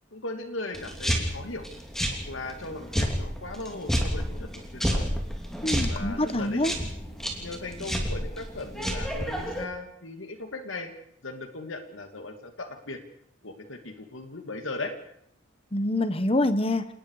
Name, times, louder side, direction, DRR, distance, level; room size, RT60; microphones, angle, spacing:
voice 1, 0.1-1.7 2.3-5.1 5.9-6.6 7.4-10.9 11.2-13.0 13.4-14.9, left 2 dB, 85° left, 6 dB, 2.6 m, -38 dB
sound 1, 0.7-9.6, equal, ahead, 3.2 m, -30 dB
voice 2, 5.6-6.7 15.7-16.9, left 1 dB, 30° left, 12 dB, 1.2 m, -25 dB
28.0 x 19.5 x 5.0 m, 0.69 s
head